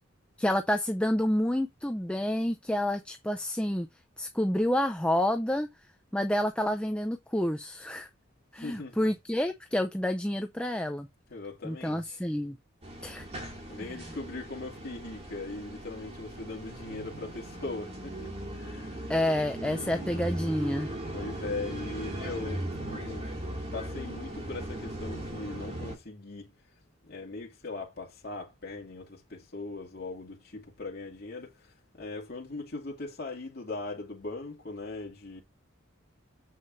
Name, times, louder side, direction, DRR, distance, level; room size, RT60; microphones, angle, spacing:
voice 1, 0.4-3.9 4.2-5.7 6.1-8.1 8.5-11.1 11.6-12.6 13.0-13.3 19.1-20.9, left 1 dB, 5° left, 0.6 m, -29 dB
voice 2, 8.5-9.1 11.3-12.2 13.0-13.4 13.7-19.1 19.5-20.1 21.1-23.3 23.7-26.5 27.0-35.4, left 3 dB, 50° left, 2.6 m, -40 dB
sound 1, 12.8-26.0, right 1 dB, 30° right, 2.5 m, -38 dB
7.7 x 6.4 x 2.7 m
head